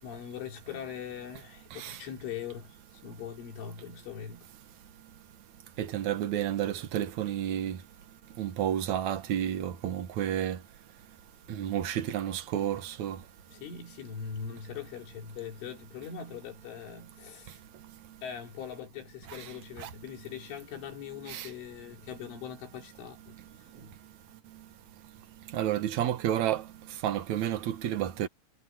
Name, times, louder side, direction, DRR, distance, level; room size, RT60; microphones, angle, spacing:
voice 1, 0.0-4.5 11.5-11.6 13.5-17.6 18.2-23.4 23.8-23.9, left 7 dB, 85° left, 6.2 m, -41 dB
voice 2, 5.8-7.8 8.4-10.6 11.5-13.2 19.3-19.5 19.8-19.9 21.3-21.5 25.5-26.6 27.0-28.3, right 11 dB, 75° right, 1.7 m, -31 dB
omnidirectional pair, 5.4 m